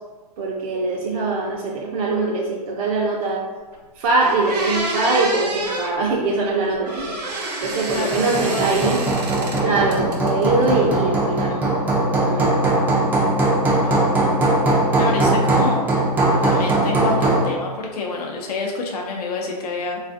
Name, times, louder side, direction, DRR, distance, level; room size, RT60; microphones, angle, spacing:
voice 1, 0.4-3.5 4.0-7.2 7.6-9.0 9.6-11.6 12.1-12.5, right 3 dB, 60° right, -3 dB, 0.5 m, -22 dB
sound 1, 3.7-3.8 4.2-5.9 6.9-9.6 9.9-10.6, right 2 dB, 85° right, 0.8 m, -28 dB
voice 2, 7.9-8.9 13.7-14.1 15.0-15.9 16.3-20.0, left 3 dB, 70° left, 0 dB, 0.6 m, -28 dB
Hammer, 7.9-17.5, right 2 dB, 10° right, 0.3 m, -20 dB
3.3 x 2.3 x 2.5 m, 1.3 s
hypercardioid pair, 135°, 20 cm